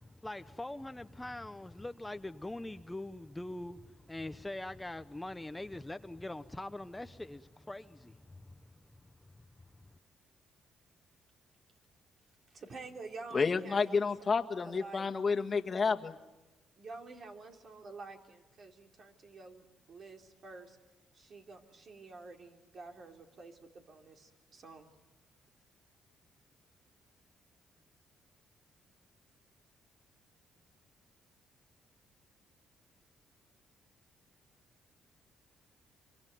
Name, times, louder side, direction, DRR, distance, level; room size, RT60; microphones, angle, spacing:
voice 1, 0.2-8.6, left 1 dB, 10° left, 0.9 m, -43 dB
voice 2, 12.5-15.1 16.8-20.8 21.1-24.9, right 3 dB, 50° right, 3.7 m, -49 dB
voice 3, 13.3-16.2, left 5 dB, 35° left, 1.7 m, -30 dB
26.0 x 24.0 x 9.4 m
cardioid pair, 90°, 0 cm